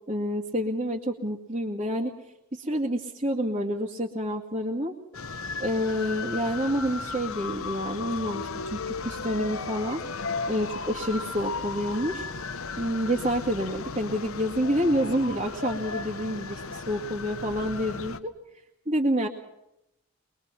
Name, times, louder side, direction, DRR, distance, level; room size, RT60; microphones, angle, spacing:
voice 1, 0.1-2.1 2.5-4.9 5.6-10.0 10.5-12.3 12.8-18.3 18.9-19.3, equal, 30° right, -5 dB, 2.1 m, -28 dB
sound 1, 5.1-18.2, left 4 dB, 75° left, 1.1 m, -35 dB
23.0 x 23.0 x 6.0 m, 0.86 s
head